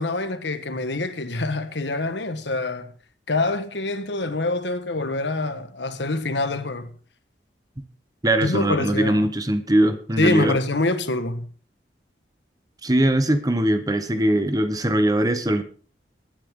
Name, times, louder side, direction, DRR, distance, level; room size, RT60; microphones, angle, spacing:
voice 1, 0.0-2.9 3.3-6.9 8.4-9.3 10.2-11.5, left 2 dB, 85° left, 1.4 m, -25 dB
voice 2, 8.2-10.6 12.8-15.6, right 1 dB, 20° right, 1.1 m, -21 dB
21.0 x 9.0 x 3.7 m
head